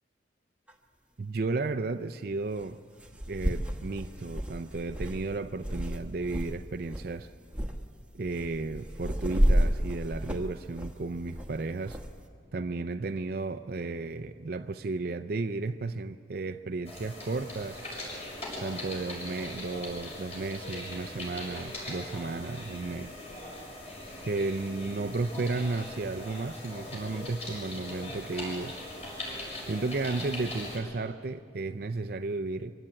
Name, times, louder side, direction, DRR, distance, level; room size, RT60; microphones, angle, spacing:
sound 1, 0.7-0.8 2.6-2.7 3.0-6.5 6.8-7.1 7.5-7.8 8.2-12.1, equal, 5° right, 1.2 m, -30 dB
voice 1, 1.2-2.8 3.3-7.3 8.1-12.0 12.5-17.8 18.6-23.1 24.2-28.8 29.6-32.7, right 3 dB, 50° right, 8 dB, 0.5 m, -33 dB
sound 2, 16.8-30.8, left 1 dB, 35° left, 6.2 m, -40 dB
24.0 x 16.0 x 8.9 m, 2.2 s
head